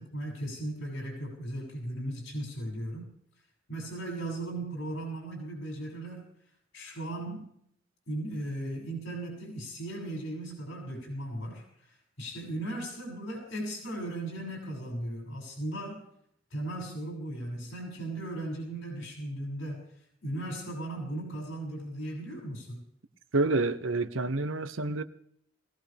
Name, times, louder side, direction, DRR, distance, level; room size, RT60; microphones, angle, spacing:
voice 1, 0.0-3.1 3.7-6.3 6.7-7.5 8.1-16.0 16.5-19.8 20.2-22.8, right 1 dB, 90° left, 6.6 m, -37 dB
voice 2, 23.3-25.0, right 3 dB, 80° right, 1.0 m, -28 dB
21.0 x 17.0 x 3.5 m
head